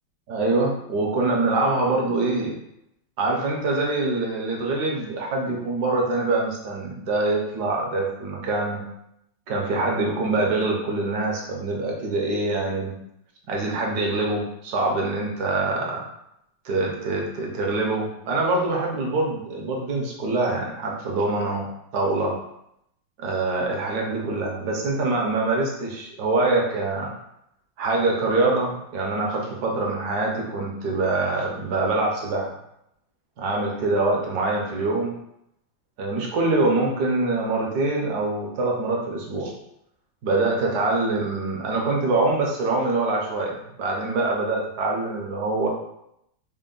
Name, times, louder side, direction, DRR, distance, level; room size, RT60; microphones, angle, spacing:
voice 1, 0.3-2.5 3.2-8.8 9.5-12.9 13.5-16.0 16.6-22.4 23.2-27.1 27.8-32.5 33.4-35.1 36.0-39.5 40.2-45.7, right 2 dB, 65° right, -1 dB, 1.1 m, -24 dB
4.3 x 2.1 x 3.8 m, 0.78 s
omnidirectional pair, 2.2 m